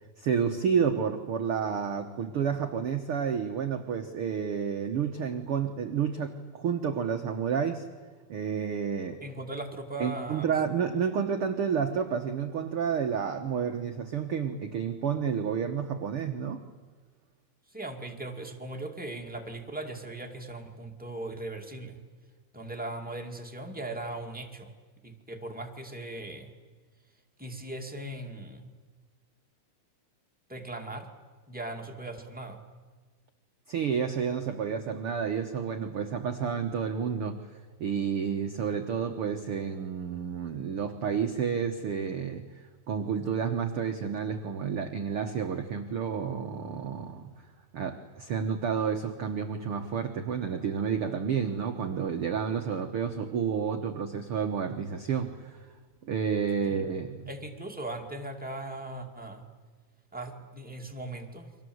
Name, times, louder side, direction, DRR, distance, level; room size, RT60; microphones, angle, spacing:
voice 1, 0.2-7.9 8.3-9.2 10.0-16.6 33.7-37.5 37.8-47.3 47.7-55.6 56.0-57.3, right 7 dB, 75° right, 5 dB, 1.2 m, -30 dB
voice 2, 9.2-10.5 17.7-22.0 22.5-24.7 25.0-26.5 27.4-28.7 30.5-31.1 31.5-32.6 56.6-56.8 57.3-59.4 60.1-61.5, right 2 dB, 5° right, 1 dB, 1.2 m, -39 dB
30.0 x 24.5 x 8.0 m, 1.4 s
omnidirectional pair, 4.4 m